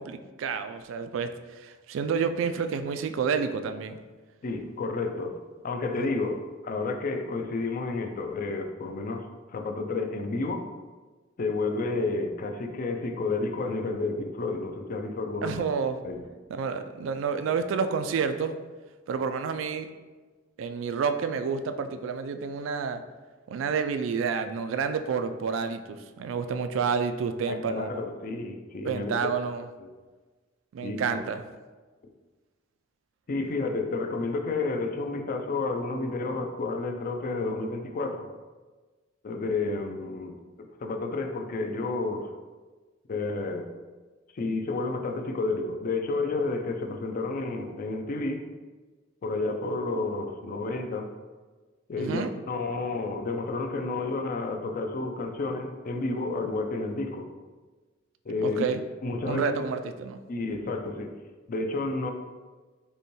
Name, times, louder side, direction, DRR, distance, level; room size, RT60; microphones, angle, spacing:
voice 1, 0.0-4.0 6.0-6.1 15.4-16.0 16.5-18.5 19.1-19.9 20.6-23.0 23.5-28.0 28.8-29.7 30.7-31.4 52.0-52.3 58.4-58.8 59.2-60.2, right 5 dB, 75° right, 9 dB, 0.3 m, -29 dB
voice 2, 4.4-5.4 5.6-10.6 11.4-15.7 16.0-16.2 27.5-29.1 29.8-29.9 30.8-31.0 33.3-38.3 39.2-42.3 43.1-43.7 44.3-48.4 49.2-51.1 51.9-57.3 58.3-58.6 59.0-59.6 60.3-61.1 61.5-62.1, left 3 dB, 45° left, 5 dB, 0.4 m, -31 dB
5.3 x 2.2 x 3.1 m, 1.3 s
head